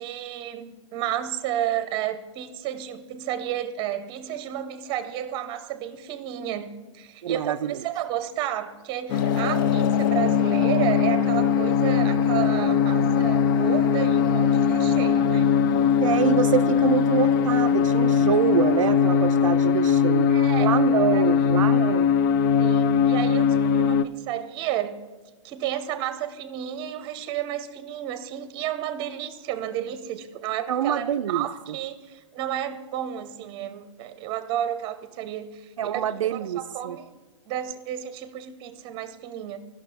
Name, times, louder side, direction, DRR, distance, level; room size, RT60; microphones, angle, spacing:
voice 1, 0.0-15.5 20.3-20.7 21.1-21.3 22.6-25.0 25.4-35.6 35.9-37.1 37.5-39.6, right 11 dB, 30° right, 11 dB, 0.8 m, -32 dB
voice 2, 7.2-7.8 16.0-20.3 20.6-22.1 30.7-31.5 35.8-37.0, right 9 dB, 80° right, 9 dB, 0.4 m, -25 dB
sound 1, 9.1-24.0, left 7 dB, 40° left, 0.4 m, -20 dB
14.5 x 5.9 x 4.1 m, 1.3 s
hypercardioid pair, 140°, 16 cm